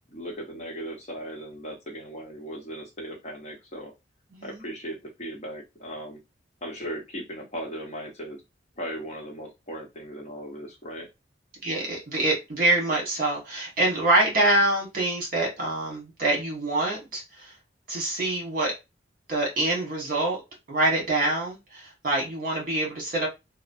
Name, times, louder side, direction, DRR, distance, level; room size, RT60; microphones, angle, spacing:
voice 1, 0.1-3.9 4.4-6.2 6.6-8.4 8.8-11.1, equal, 35° left, -1 dB, 0.9 m, -37 dB
voice 2, 4.3-4.6 11.6-17.5 17.9-18.7 19.3-20.4 20.7-23.3, right 2 dB, 50° right, -1 dB, 1.3 m, -25 dB
3.0 x 2.1 x 2.6 m, 0.24 s
head